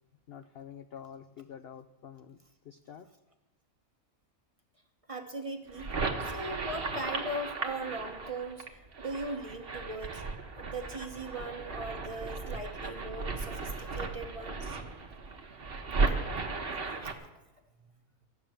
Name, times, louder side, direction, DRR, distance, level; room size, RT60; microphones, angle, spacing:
voice 1, 0.3-2.4 2.6-3.1, left 8 dB, 65° left, 9 dB, 0.6 m, -47 dB
voice 2, 5.1-5.9 6.2-10.2 10.5-14.8 17.0-17.1, right 2 dB, 25° right, 5 dB, 1.0 m, -39 dB
sound 1, 5.7-17.1, right 3 dB, 45° right, 1.3 m, -35 dB
14.5 x 6.7 x 8.9 m, 1.0 s
omnidirectional pair, 1.5 m